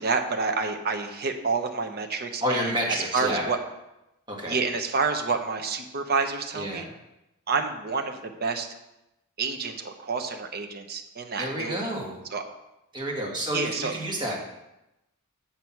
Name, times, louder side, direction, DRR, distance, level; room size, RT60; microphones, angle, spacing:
voice 1, 0.0-3.6 4.5-6.9 7.5-8.7 9.4-11.8 12.3-12.4 13.5-13.9, right 4 dB, 45° right, 5 dB, 0.9 m, -28 dB
voice 2, 2.4-3.5 4.3-4.6 6.5-6.9 11.4-12.2 12.9-14.4, equal, 20° right, -2 dB, 1.9 m, -29 dB
8.1 x 5.8 x 5.9 m, 0.92 s
head